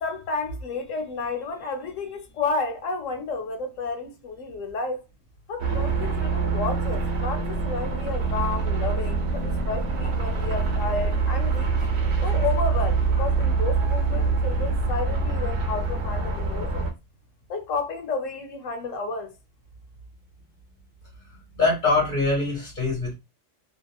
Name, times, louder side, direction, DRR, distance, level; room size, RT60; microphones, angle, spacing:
voice 1, 0.0-5.0 5.5-11.7 12.2-16.9 17.5-19.3, left 4 dB, 85° left, 1.1 m, -31 dB
sound 1, 5.6-16.9, right 4 dB, 65° right, 0.9 m, -25 dB
voice 2, 21.5-23.1, left 3 dB, 40° left, 1.2 m, -23 dB
2.7 x 2.3 x 2.2 m
omnidirectional pair, 1.3 m